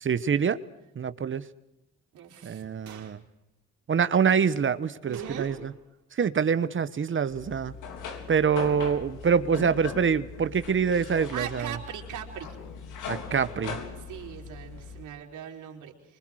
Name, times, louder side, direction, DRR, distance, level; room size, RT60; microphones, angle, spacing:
voice 1, 0.0-0.6 1.0-1.4 2.4-3.2 3.9-5.6 6.1-7.7 8.3-11.7 13.1-13.8, right 6 dB, 40° right, 14 dB, 1.1 m, -25 dB
voice 2, 2.1-2.6 5.0-5.5 11.3-12.6 13.3-13.4 13.9-16.2, right 9 dB, 80° right, 1 dB, 4.6 m, -39 dB
gunshot indoors, 2.9-3.3 5.1-6.0 6.2-6.3 11.4-11.5, right 7 dB, 65° right, 5.0 m, -48 dB
sound 1, 7.3-15.0, left 6 dB, 80° left, 3.6 m, -40 dB
25.0 x 25.0 x 6.4 m, 0.83 s
cardioid pair, 90°, 30 cm